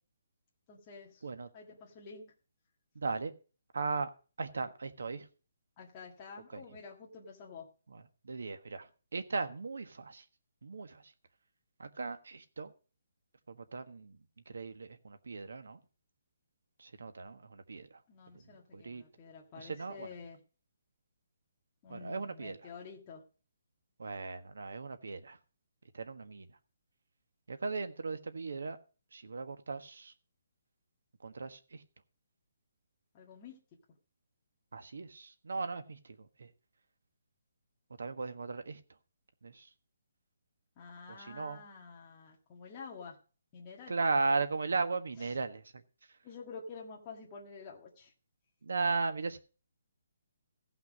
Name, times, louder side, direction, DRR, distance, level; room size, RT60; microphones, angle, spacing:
voice 1, 0.7-1.3 1.5-2.2 5.8-7.7 18.1-20.4 21.8-23.2 33.1-33.6 40.8-43.2 43.5-44.0 45.2-45.4 46.2-48.1, left 5 dB, 15° left, 1.7 m, -49 dB
voice 2, 2.9-3.3 3.7-4.1 4.4-5.2 6.5-6.6 8.2-8.8 9.1-10.2 10.6-11.0 11.8-12.7 13.5-14.1 14.5-15.8 16.8-17.9 18.7-19.0 19.6-20.1 21.9-22.6 24.0-25.4 25.9-26.5 27.5-28.8 29.1-30.1 31.2-31.6 34.7-36.0 36.4-36.5 38.0-38.8 39.4-39.6 41.1-41.6 43.9-45.6 48.6-49.4, right 4 dB, 85° right, 1.4 m, -36 dB
15.5 x 5.9 x 6.2 m
hypercardioid pair, 180°, 0 cm